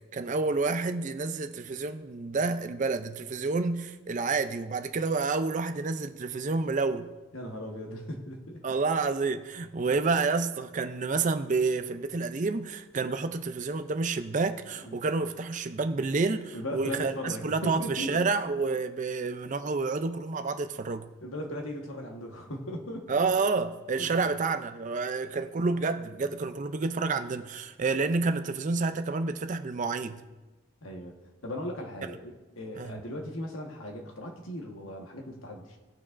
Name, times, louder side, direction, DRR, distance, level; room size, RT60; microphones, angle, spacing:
voice 1, 0.1-7.1 8.6-21.1 23.1-30.2 32.8-32.9, right 4 dB, 40° right, 0.4 m, -29 dB
voice 2, 7.3-8.6 14.8-15.0 16.5-18.3 21.2-23.1 24.0-24.3 30.8-31.1 31.4-35.8, equal, 80° left, 1.4 m, -38 dB
18.5 x 6.1 x 2.5 m
head